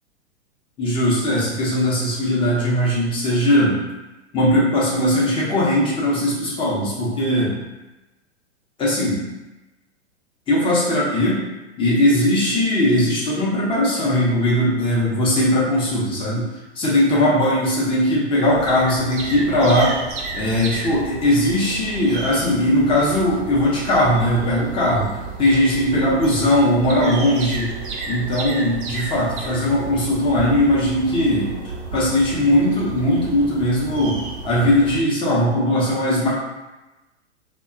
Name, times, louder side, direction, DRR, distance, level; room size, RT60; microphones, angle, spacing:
voice 1, 0.8-3.8 4.3-7.6 8.8-9.2 10.5-11.4 11.8-16.5 16.8-20.0 20.3-25.1 25.4-27.7 28.1-31.5 31.9-36.3, left 1 dB, 15° left, -6 dB, 0.6 m, -19 dB
sound 1, 18.5-35.0, right 3 dB, 45° right, 0.5 m, -32 dB
2.6 x 2.1 x 2.4 m, 1.1 s
hypercardioid pair, 120°, 36 cm